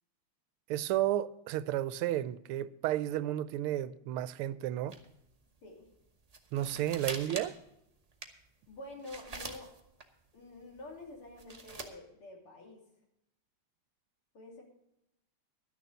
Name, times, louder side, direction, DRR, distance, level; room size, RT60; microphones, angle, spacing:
voice 1, 0.7-5.0 6.5-7.6, right 13 dB, 85° right, 1.5 m, -32 dB
sound 1, 4.9-5.3 5.6-5.7 5.9-6.0 6.3-7.7 8.1-10.0 10.6-11.9, right 3 dB, 35° right, 0.6 m, -43 dB
voice 2, 8.7-9.7 10.3-12.8 14.3-14.6, left 2 dB, 80° left, 3.6 m, -48 dB
12.0 x 6.7 x 7.8 m
omnidirectional pair, 2.3 m